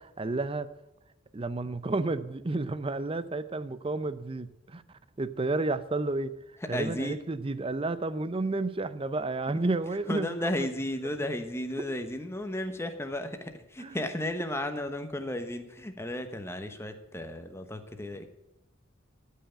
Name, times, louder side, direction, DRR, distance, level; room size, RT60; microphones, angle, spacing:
voice 1, 0.2-0.7 1.3-4.8 5.2-6.3 6.7-10.7 13.8-14.0, right 2 dB, 25° right, 14 dB, 0.5 m, -31 dB
voice 2, 6.7-7.2 10.1-18.3, left 1 dB, 15° left, 7 dB, 1.0 m, -34 dB
13.0 x 5.6 x 8.9 m, 0.90 s
head